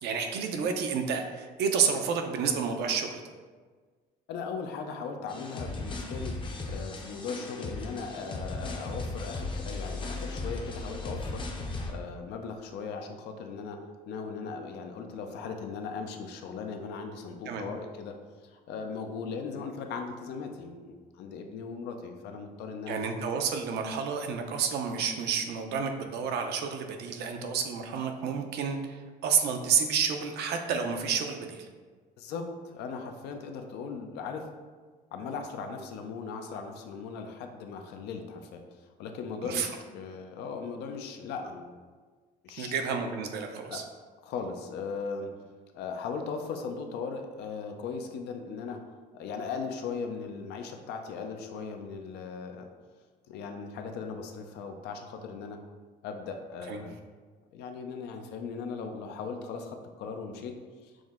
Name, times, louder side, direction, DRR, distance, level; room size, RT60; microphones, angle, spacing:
voice 1, 0.0-3.2 17.5-17.7 22.9-31.7 39.4-39.7 42.6-43.8 56.7-56.8, right 6 dB, 75° right, 5 dB, 0.6 m, -30 dB
voice 2, 4.3-6.3 6.7-13.8 14.1-18.2 18.4-23.0 32.2-34.5 35.1-41.7 42.4-42.7 43.7-43.8 44.2-45.3 45.7-48.8 49.1-52.7 53.3-55.6 56.0-56.9 57.5-60.6 60.8-60.9, left 5 dB, 80° left, 4 dB, 0.5 m, -38 dB
sound 1, 5.3-11.9, left 2 dB, 30° left, 0.6 m, -36 dB
6.2 x 2.1 x 3.6 m, 1.5 s
cardioid pair, 110°, 17 cm